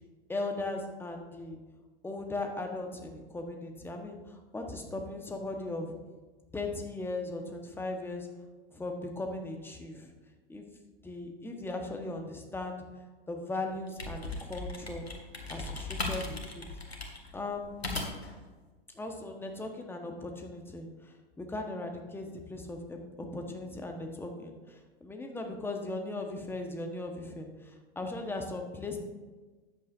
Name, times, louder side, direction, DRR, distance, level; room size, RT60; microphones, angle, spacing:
voice 1, 0.3-1.6 2.0-5.9 6.5-8.3 8.7-10.1 10.5-10.7 11.0-12.8 13.3-15.1 15.5-16.6 17.3-17.7 18.9-29.0, left 2 dB, 5° left, 3 dB, 1.3 m, -38 dB
sound 1, 13.7-18.4, left 2 dB, 85° left, 1.8 m, -38 dB
13.5 x 9.1 x 2.7 m, 1.3 s
figure-of-eight pair, 95°, 31 cm